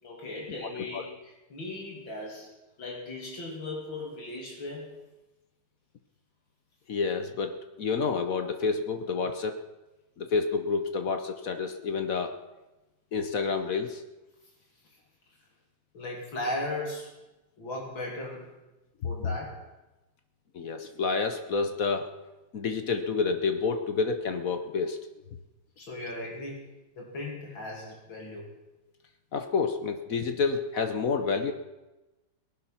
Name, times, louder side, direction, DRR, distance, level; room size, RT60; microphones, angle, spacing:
voice 1, 0.0-2.5 2.8-4.9 15.9-17.1 17.6-18.5 19.0-19.5 25.8-26.6 27.0-28.5, left 2 dB, 80° left, -1 dB, 3.4 m, -37 dB
voice 2, 6.9-9.6 10.2-12.3 13.1-14.0 20.5-22.1 22.5-25.0 29.3-31.5, left 5 dB, 55° left, 8 dB, 1.2 m, -29 dB
19.0 x 11.5 x 5.8 m, 1.1 s
omnidirectional pair, 2.1 m